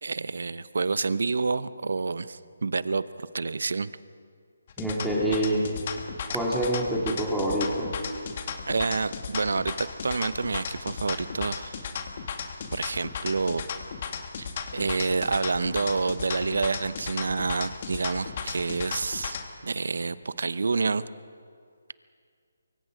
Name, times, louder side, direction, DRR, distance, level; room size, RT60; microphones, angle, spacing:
voice 1, 0.0-3.9 5.3-5.4 8.7-11.8 12.7-13.6 14.4-19.4 19.6-21.0, right 4 dB, 70° right, 16 dB, 0.8 m, -28 dB
sound 1, 4.7-19.5, left 6 dB, 40° left, 2.0 m, -35 dB
voice 2, 4.8-5.6 6.3-7.9, right 1 dB, ahead, -6 dB, 2.7 m, -26 dB
24.0 x 23.5 x 5.1 m, 2.2 s
figure-of-eight pair, 155°, 0 cm